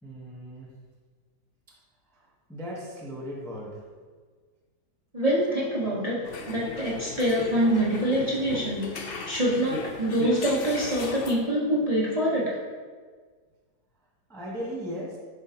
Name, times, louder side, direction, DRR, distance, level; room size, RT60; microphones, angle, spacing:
voice 1, 0.0-0.7 1.7-1.8 2.1-2.2 2.5-3.8 14.3-15.2, equal, ahead, -5 dB, 0.7 m, -37 dB
voice 2, 5.1-12.6, equal, 30° right, -6 dB, 0.8 m, -25 dB
sound 1, 6.2-11.4, left 3 dB, 85° left, 0.5 m, -37 dB
10.5 x 3.8 x 2.8 m, 1.5 s
omnidirectional pair, 1.8 m